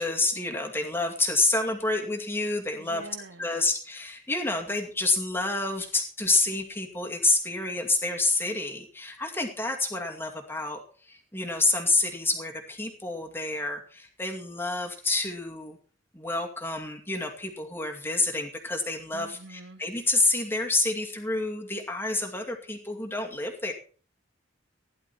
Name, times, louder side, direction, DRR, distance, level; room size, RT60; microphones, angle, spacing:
voice 1, 0.0-3.1 3.4-15.8 16.1-23.7, left 2 dB, 10° left, 2 dB, 2.3 m, -28 dB
voice 2, 2.8-3.5 19.1-19.8, right 3 dB, 60° right, 8 dB, 1.3 m, -45 dB
16.0 x 11.0 x 4.4 m, 0.40 s
head